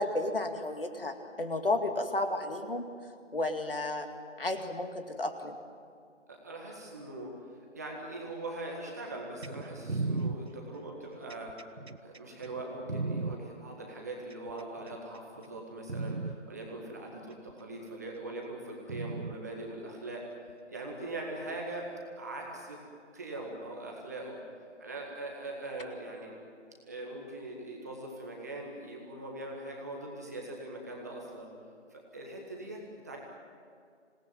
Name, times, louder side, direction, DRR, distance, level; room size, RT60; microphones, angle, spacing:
voice 1, 0.0-2.8 3.3-4.1 4.4-5.6, left 2 dB, 50° left, 6 dB, 2.3 m, -32 dB
voice 2, 6.3-11.5 12.0-20.2 20.7-21.9 22.2-22.8 23.1-24.4 24.8-26.4 26.9-31.5 31.9-33.2, right 2 dB, 15° right, -1 dB, 1.8 m, -41 dB
sound 1, 9.4-13.4 14.3-15.0 15.4-15.6 15.9-16.4 17.5-17.6 18.9-19.4 20.5-20.6, right 3 dB, 60° right, 1.2 m, -35 dB
26.5 x 19.0 x 9.4 m, 2.2 s
figure-of-eight pair, 165°, 36 cm